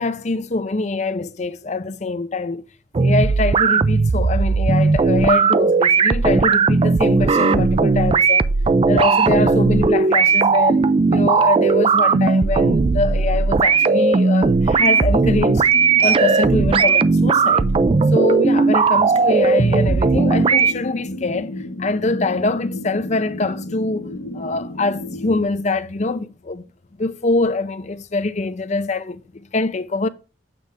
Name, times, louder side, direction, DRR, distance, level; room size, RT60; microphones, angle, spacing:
voice 1, 0.0-2.6 3.0-8.5 8.9-10.9 11.1-15.7 16.0-17.7 18.1-21.5 21.8-26.6 27.0-30.1, left 3 dB, 40° left, 0.6 m, -24 dB
sound 1, 2.9-20.7, right 4 dB, 30° right, 0.3 m, -16 dB
sound 2, 8.1-25.4, left 1 dB, 60° left, 1.0 m, -35 dB
8.5 x 3.4 x 5.1 m
head